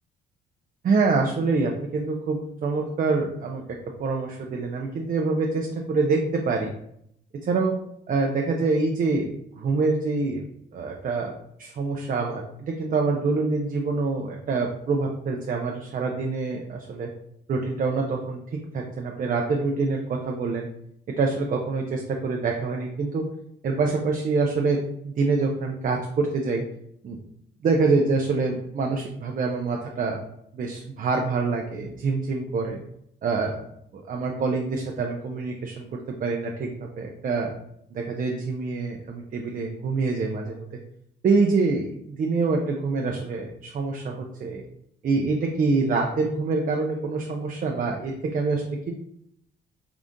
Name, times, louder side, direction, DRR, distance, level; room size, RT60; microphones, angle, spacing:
voice 1, 0.8-6.7 7.4-7.8 8.1-9.3 9.6-10.4 10.7-11.3 11.6-17.1 17.5-20.7 21.2-23.3 23.6-26.6 27.0-27.2 27.6-30.2 30.5-32.8 33.2-33.6 33.9-37.5 37.9-40.7 41.2-44.6 45.0-48.9, right 4 dB, 45° right, 1 dB, 0.5 m, -26 dB
3.8 x 2.4 x 3.6 m, 0.73 s
cardioid pair, 90°, 20 cm